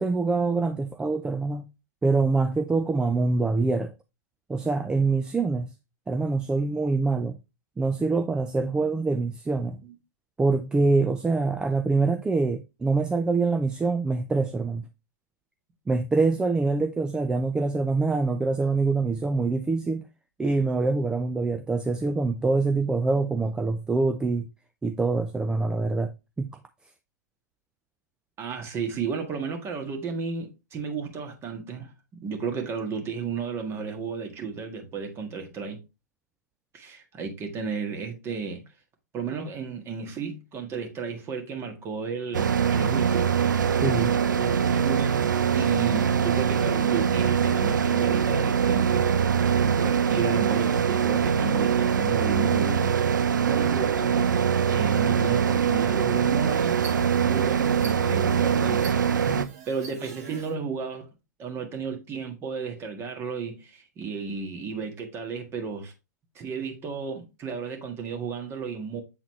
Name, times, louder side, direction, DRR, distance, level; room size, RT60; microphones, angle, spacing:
voice 1, 0.0-1.6 2.0-3.9 4.5-5.7 6.1-7.4 7.8-9.8 10.4-14.8 15.9-20.0 20.4-24.5 24.8-26.1 26.4-26.5 43.8-44.1 59.3-59.5, right 3 dB, 10° right, 0.4 m, -25 dB
voice 2, 28.4-31.9 32.2-35.8 36.7-38.6 39.1-43.3 44.4-45.3 45.5-49.0 49.7-56.7 57.2-59.3 59.7-61.1 61.4-65.9 66.4-69.0, right 5 dB, 25° right, 1.7 m, -33 dB
sound 1, 42.3-59.5, right 7 dB, 75° right, 0.6 m, -23 dB
sound 2, 56.5-60.5, right 5 dB, 55° right, 1.9 m, -44 dB
7.8 x 3.9 x 3.1 m
hypercardioid pair, 120°, 10 cm